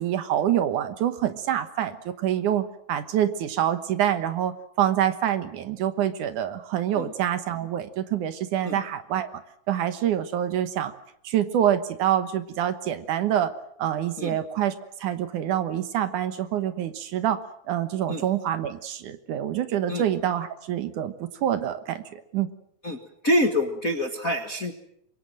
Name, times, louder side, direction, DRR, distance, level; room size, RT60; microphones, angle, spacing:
voice 1, 0.0-9.3 9.7-10.9 11.2-13.5 13.8-14.7 15.0-17.4 17.7-22.0 22.3-22.5, right 10 dB, 65° right, 11 dB, 2.5 m, -26 dB
voice 2, 23.2-24.7, left 1 dB, 35° left, 5 dB, 1.5 m, -25 dB
25.0 x 22.5 x 7.6 m, 0.71 s
omnidirectional pair, 4.0 m